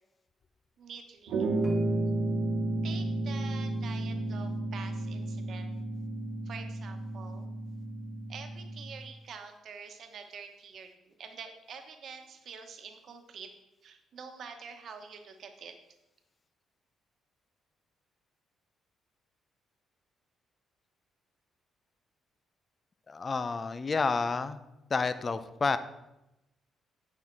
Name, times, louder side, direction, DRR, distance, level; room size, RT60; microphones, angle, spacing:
voice 1, 0.8-1.5 2.8-5.7 6.4-7.5 8.3-13.5 13.8-15.8, right 6 dB, 60° right, 5 dB, 1.1 m, -46 dB
sound 1, 1.3-9.0, right 2 dB, 90° right, 1.1 m, -32 dB
sound 2, 1.6-5.9, right 4 dB, 15° left, 1.8 m, -45 dB
voice 2, 23.1-24.6 24.9-25.8, left 4 dB, 35° left, 12 dB, 0.5 m, -30 dB
8.6 x 5.7 x 4.6 m, 0.92 s
cardioid pair, 90°, 0 cm